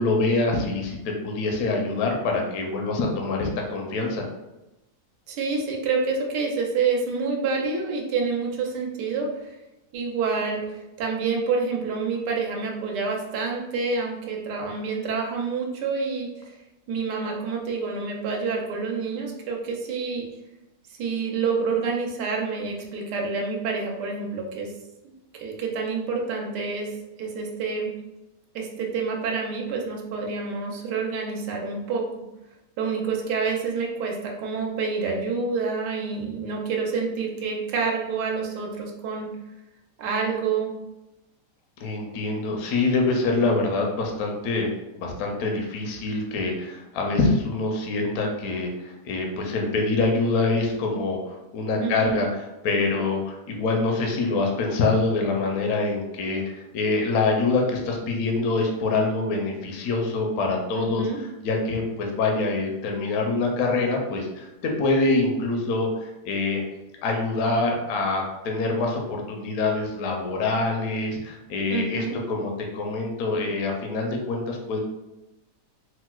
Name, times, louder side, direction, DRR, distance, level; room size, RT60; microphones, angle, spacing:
voice 1, 0.0-4.2 41.8-44.7 44.9-66.6 67.0-74.8, left 3 dB, 70° left, 1 dB, 0.9 m, -25 dB
voice 2, 5.3-9.6 9.9-16.6 16.9-20.3 20.9-24.7 25.0-25.1 25.4-27.9 28.5-32.0 32.8-39.3 40.0-40.7 51.8-52.2 60.8-61.2 71.7-72.1, right 4 dB, 90° right, 0 dB, 1.2 m, -28 dB
4.4 x 2.0 x 2.2 m, 0.97 s
omnidirectional pair, 1.8 m